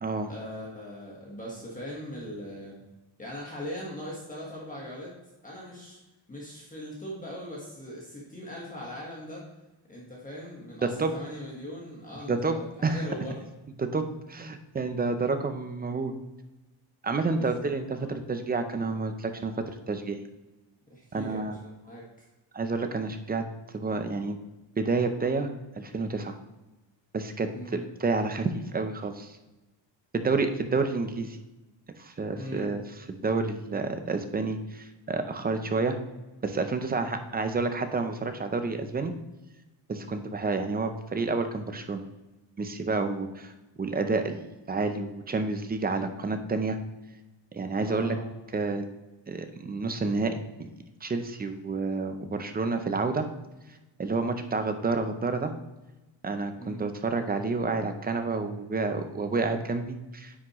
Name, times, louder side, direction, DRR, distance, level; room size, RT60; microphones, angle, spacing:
voice 1, 0.3-2.8 3.2-5.1 5.4-6.0 6.3-9.5 9.9-13.5 17.3-18.1 20.9-22.1 27.5-27.8 32.4-32.7 47.8-48.3 56.6-56.9, equal, 15° left, -4 dB, 1.4 m, -40 dB
voice 2, 10.8-11.1 12.3-12.6 12.8-13.1 13.8-16.1 17.0-20.2 21.1-21.6 22.5-23.5 23.7-24.4 24.8-26.4 27.1-29.4 30.1-31.4 32.0-32.8 33.2-36.0 36.4-39.1 39.9-42.0 42.6-43.5 43.8-46.8 47.5-48.2 48.5-48.8 49.3-50.7 51.0-53.3 54.0-55.5 56.2-60.3, right 3 dB, 20° right, 7 dB, 0.5 m, -29 dB
9.6 x 6.0 x 3.0 m, 1.1 s
wide cardioid pair, 180°, 46 cm